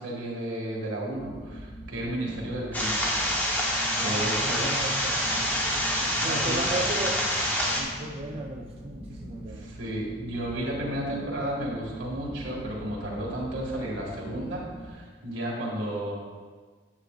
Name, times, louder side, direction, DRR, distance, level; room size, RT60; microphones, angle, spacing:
voice 1, 0.0-2.9 3.9-4.6 6.0-6.9 9.4-16.1, right 1 dB, 75° right, -3 dB, 1.8 m, -33 dB
sound 1, 1.1-14.9, equal, 60° left, 2.4 m, -42 dB
sound 2, 2.7-7.8, equal, 10° left, 0.9 m, -27 dB
voice 2, 4.0-5.9 6.2-7.2 7.7-9.7, right 2 dB, 30° right, -1 dB, 0.4 m, -36 dB
9.8 x 7.7 x 2.4 m, 1.5 s
head